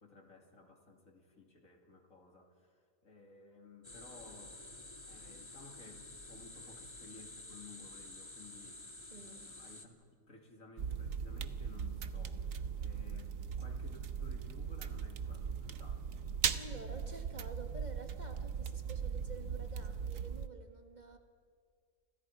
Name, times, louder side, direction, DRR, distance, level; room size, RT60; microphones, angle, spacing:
voice 1, 0.0-10.0 10.3-16.1, left 3 dB, 70° left, 3 dB, 2.9 m, -57 dB
sound 1, 3.8-9.9, left 2 dB, 20° left, 1.7 m, -50 dB
voice 2, 9.1-9.5 16.5-21.2, right 3 dB, 35° right, 5 dB, 1.5 m, -50 dB
sound 2, 10.8-20.5, right 7 dB, 70° right, 1.3 m, -39 dB
29.5 x 26.0 x 4.8 m, 2.1 s
omnidirectional pair, 1.4 m